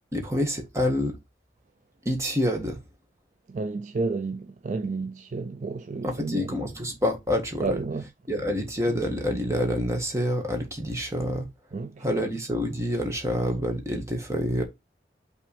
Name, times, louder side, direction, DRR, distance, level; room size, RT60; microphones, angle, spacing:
voice 1, 0.1-1.2 2.0-2.8 6.0-7.8 8.3-11.5 12.0-14.6, equal, 15° right, 1.6 m, -27 dB
voice 2, 3.5-6.5 7.6-8.0 11.7-12.3, right 3 dB, 40° right, 0.4 m, -31 dB
5.8 x 3.4 x 5.0 m
head